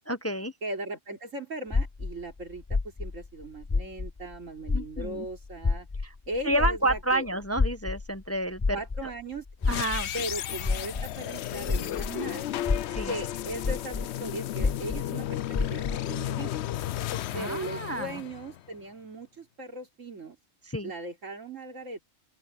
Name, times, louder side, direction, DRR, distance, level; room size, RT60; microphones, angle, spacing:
voice 1, 0.1-0.5 4.7-5.3 6.0-6.1 6.4-8.8 9.0-9.1 9.7-10.1 12.9-13.1 17.3-18.1 20.6-20.9, right 1 dB, 15° left, 0.7 m, -30 dB
voice 2, 0.6-5.9 6.3-7.3 8.7-9.4 10.1-12.5 13.1-15.4 15.7-16.5 17.3-20.4 20.8-22.0, right 1 dB, 90° right, 3.8 m, -38 dB
sound 1, 1.7-4.4 4.6-12.2 12.6-16.1, left 4 dB, 30° left, 0.3 m, -30 dB
sound 2, 9.6-18.8, left 12 dB, 65° left, 0.8 m, -34 dB
open air
omnidirectional pair, 1.3 m